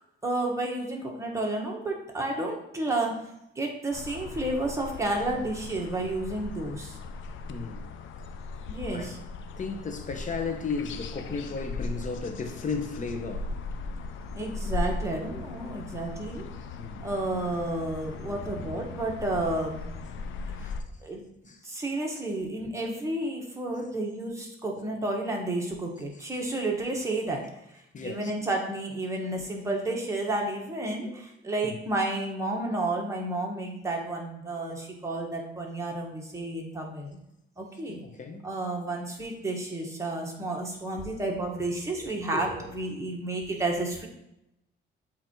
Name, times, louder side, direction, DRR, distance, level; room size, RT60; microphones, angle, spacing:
voice 1, 0.2-7.0 8.7-9.2 14.3-16.5 17.0-19.9 20.6-20.7 21.0-21.2 21.6-27.5 28.0-37.2 37.6-38.0 38.4-44.1, right 2 dB, 15° right, 1.7 m, -31 dB
sound 1, 3.9-20.8, left 3 dB, 75° left, 0.6 m, -38 dB
voice 2, 7.5-7.9 8.9-9.1 9.6-13.5 16.8-17.0 20.6-20.7 21.5-21.6 27.9-28.3 31.6-31.8 37.9-38.5, left 4 dB, 40° left, 1.0 m, -34 dB
7.8 x 2.9 x 4.6 m
cardioid pair, 90°, 20 cm